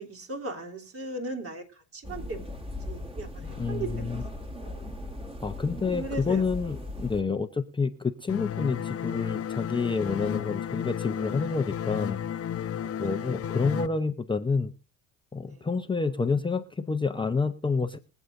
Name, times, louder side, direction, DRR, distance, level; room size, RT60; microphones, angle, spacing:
voice 1, 0.0-4.1 4.5-4.8 5.9-6.4 7.0-7.1 15.5-15.7, right 2 dB, 40° right, 2 dB, 3.3 m, -38 dB
sound 1, 2.0-7.2, left 1 dB, 15° right, 2.2 m, -38 dB
voice 2, 3.6-4.2 5.4-12.2 13.0-14.7 15.3-18.0, left 4 dB, 15° left, 7 dB, 0.8 m, -28 dB
sound 2, 8.3-13.9, left 9 dB, 40° left, 0.9 m, -33 dB
24.5 x 8.2 x 2.6 m, 0.31 s
supercardioid pair, 100°, 35 cm